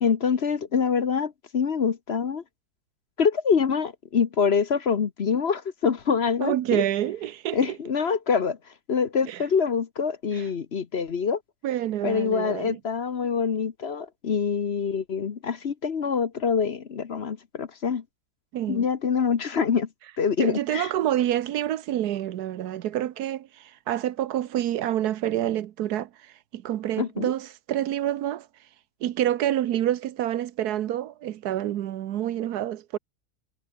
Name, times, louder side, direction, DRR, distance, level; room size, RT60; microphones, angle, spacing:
voice 1, 0.0-2.4 3.2-6.8 7.5-8.6 8.9-11.4 12.0-18.0 18.7-19.9 20.2-20.9 27.0-27.3, left 6 dB, 45° left, 1.1 m, -25 dB
voice 2, 6.4-7.8 9.3-9.4 10.3-10.4 11.6-12.8 18.5-18.8 20.4-28.5 29.0-33.0, right 12 dB, 85° right, 1.3 m, -28 dB
omnidirectional pair, 1.6 m